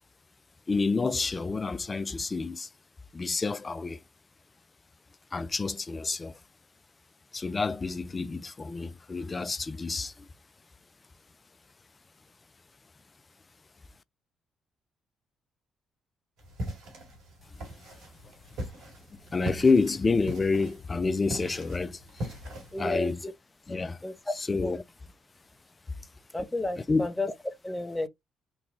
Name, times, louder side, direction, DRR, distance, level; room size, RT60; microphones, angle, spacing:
voice 1, 0.7-2.7 3.1-4.0 5.3-6.4 7.3-10.3 19.3-22.3 22.8-23.2 23.7-24.0 24.3-24.8 26.9-27.1, left 4 dB, 30° left, 0.4 m, -28 dB
sound 1, 16.4-23.1, equal, 70° right, 2.0 m, -40 dB
voice 2, 22.7-23.1 23.8-24.3 24.6-24.8 26.3-27.3 27.6-28.1, left 2 dB, 15° left, 0.8 m, -32 dB
3.8 x 2.3 x 3.0 m
hypercardioid pair, 45°, 0 cm